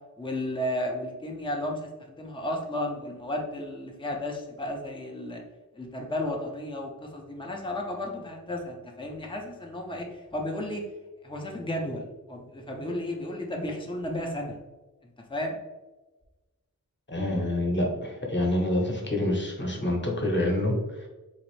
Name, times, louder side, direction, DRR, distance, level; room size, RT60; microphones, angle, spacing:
voice 1, 0.2-5.4 5.7-10.9 11.2-14.6 15.3-15.6, left 1 dB, 15° left, 1 dB, 0.6 m, -33 dB
voice 2, 17.1-21.1, left 1 dB, 30° left, -1 dB, 1.0 m, -27 dB
4.0 x 2.5 x 3.1 m, 1.1 s
wide cardioid pair, 45°, 36 cm